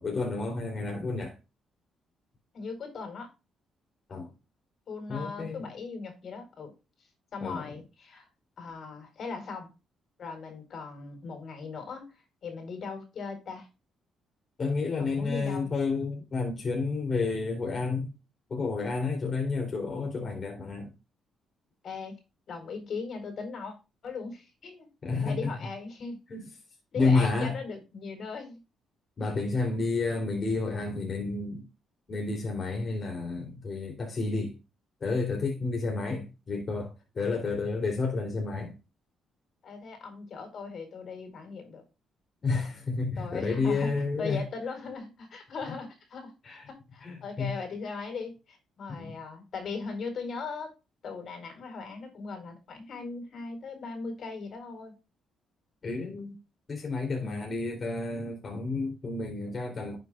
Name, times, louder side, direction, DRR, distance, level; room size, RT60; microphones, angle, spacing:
voice 1, 0.0-1.4 4.1-4.3 5.1-5.6 7.4-7.6 14.6-18.1 18.5-20.9 25.0-25.5 26.3-26.4 26.9-27.6 29.2-31.6 32.1-34.6 35.0-38.7 42.4-44.5 46.4-46.6 47.0-47.5 48.9-49.1 55.8-56.4 56.7-60.0, left 3 dB, 40° left, 3.6 m, -30 dB
voice 2, 2.5-3.3 4.9-6.7 7.3-8.3 8.6-9.7 10.2-13.7 15.0-15.7 21.8-22.1 22.5-23.7 24.0-24.9 25.2-26.2 26.9-28.6 39.6-41.8 43.2-50.7 51.0-54.9 57.2-57.5, left 4 dB, 60° left, 4.6 m, -39 dB
11.5 x 8.0 x 2.5 m
cardioid pair, 90°, 0 cm